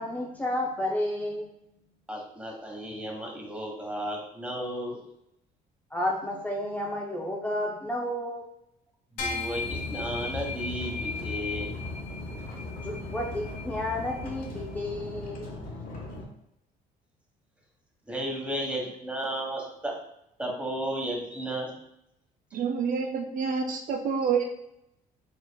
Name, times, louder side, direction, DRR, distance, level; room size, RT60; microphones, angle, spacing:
voice 1, 0.0-1.5 5.9-8.5 12.8-15.6, left 1 dB, 10° left, -2 dB, 0.5 m, -31 dB
voice 2, 2.1-5.0 9.1-11.7 18.1-19.9 20.4-21.7, right 1 dB, 5° right, -1 dB, 1.2 m, -34 dB
sound 1, 9.2-14.8, left 4 dB, 80° left, 1.2 m, -37 dB
sound 2, 9.5-16.2, left 2 dB, 55° left, 1.3 m, -39 dB
voice 3, 22.5-24.4, right 6 dB, 50° right, 4 dB, 0.5 m, -28 dB
4.9 x 4.0 x 2.3 m, 0.79 s
cardioid pair, 110°, 17 cm